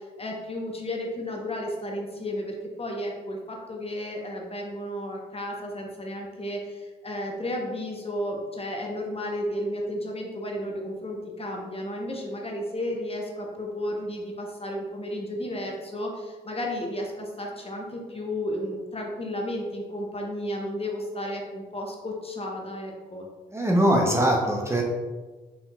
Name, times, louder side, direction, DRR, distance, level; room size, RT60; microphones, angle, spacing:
voice 1, 0.0-23.3, left 1 dB, 30° left, 0 dB, 0.9 m, -33 dB
voice 2, 23.5-24.8, right 1 dB, 15° right, 0 dB, 0.8 m, -21 dB
4.3 x 3.5 x 2.3 m, 1.3 s
hypercardioid pair, 45°, 20 cm